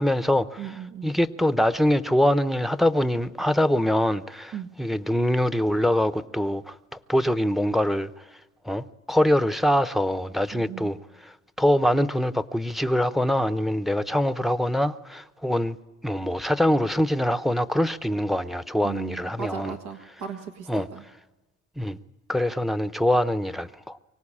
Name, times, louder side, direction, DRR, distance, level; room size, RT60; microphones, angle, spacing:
voice 1, 0.0-0.6 1.0-4.5 4.8-6.7 7.1-8.1 8.7-11.0 11.6-15.8 16.0-19.7 20.7-20.9 21.8-22.0 22.3-24.0, left 1 dB, ahead, 12 dB, 0.7 m, -23 dB
voice 2, 0.6-1.2 4.5-4.7 10.5-10.9 18.8-21.0, right 7 dB, 80° right, 5 dB, 1.8 m, -37 dB
24.5 x 18.0 x 8.6 m, 1.2 s
cardioid pair, 90°, 30 cm